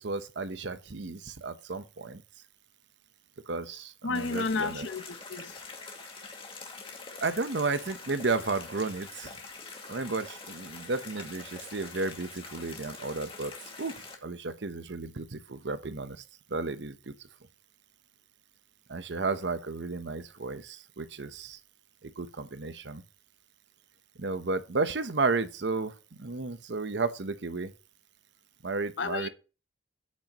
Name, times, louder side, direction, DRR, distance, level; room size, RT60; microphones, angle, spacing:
voice 1, 0.0-2.2 3.5-4.9 7.2-9.3 9.9-13.5 13.8-17.1 18.9-21.6 22.0-23.0 24.2-27.7 28.6-29.3, right 3 dB, 70° right, 0.9 m, -33 dB
voice 2, 4.0-5.6 29.0-29.3, left 4 dB, 90° left, 0.9 m, -32 dB
sound 1, 4.1-14.1, left 4 dB, 30° left, 2.2 m, -45 dB
10.5 x 8.6 x 3.0 m
head